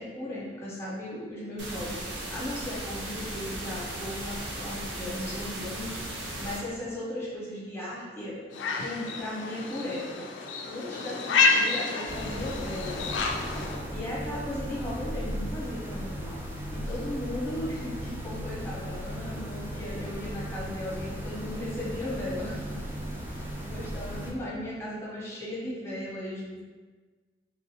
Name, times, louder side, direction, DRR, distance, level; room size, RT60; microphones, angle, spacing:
voice 1, 0.0-8.4 8.8-13.2 13.6-22.8 23.2-26.6, left 1 dB, 15° left, -7 dB, 0.9 m, -37 dB
sound 1, 1.6-6.6, right 1 dB, 70° right, 0.6 m, -37 dB
sound 2, 8.5-13.8, left 4 dB, 85° left, 0.3 m, -29 dB
sound 3, 12.1-24.3, equal, 10° right, 0.5 m, -36 dB
3.3 x 2.5 x 2.7 m, 1.4 s
head